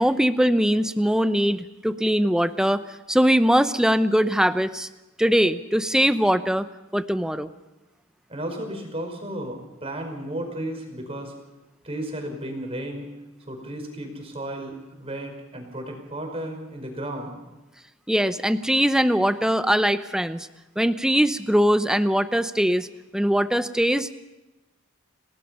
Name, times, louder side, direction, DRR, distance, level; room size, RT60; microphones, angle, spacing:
voice 1, 0.0-2.8 3.1-4.9 5.2-6.7 6.9-7.5 18.1-20.5 20.8-22.9 23.1-24.1, equal, 5° right, 11 dB, 0.7 m, -21 dB
voice 2, 8.3-11.3 11.8-13.1 13.5-17.4, right 1 dB, 30° right, 3 dB, 5.2 m, -34 dB
30.0 x 18.5 x 5.5 m, 1.1 s
head